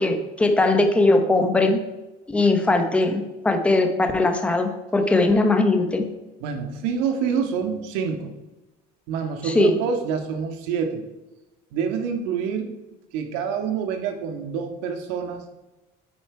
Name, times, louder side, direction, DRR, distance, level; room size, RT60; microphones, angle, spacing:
voice 1, 0.0-1.8 2.3-6.0 9.4-9.8, left 2 dB, 5° left, 6 dB, 0.8 m, -20 dB
voice 2, 6.4-8.3 9.1-11.0 11.7-12.7 13.1-15.4, right 6 dB, 85° right, 5 dB, 1.7 m, -27 dB
9.1 x 8.9 x 4.6 m, 1.1 s
cardioid pair, 180°, 17 cm